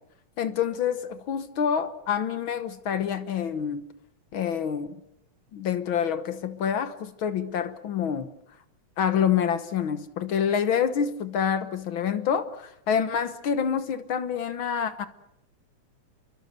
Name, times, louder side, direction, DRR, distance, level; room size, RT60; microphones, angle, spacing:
voice 1, 0.4-3.8 4.3-5.0 5.5-8.3 9.0-15.1, left 8 dB, 55° left, 1.5 m, -27 dB
29.5 x 23.0 x 6.8 m
omnidirectional pair, 3.3 m